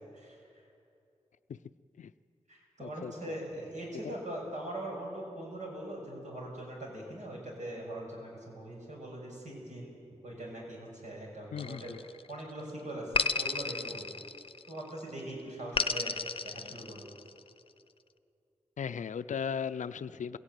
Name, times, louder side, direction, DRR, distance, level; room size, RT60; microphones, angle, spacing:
voice 1, 0.1-0.6 2.5-10.0 10.2-11.9 12.3-14.1 14.7-16.2 16.4-17.1, right 1 dB, 75° right, -1 dB, 6.4 m, -41 dB
voice 2, 2.8-3.4 11.5-12.0 18.8-20.4, left 7 dB, 90° left, 13 dB, 0.5 m, -37 dB
sound 1, 11.6-12.4 13.1-14.8 15.8-17.4, left 4 dB, 45° left, 0.7 m, -33 dB
21.0 x 16.5 x 9.2 m, 2.5 s
wide cardioid pair, 100°, 12 cm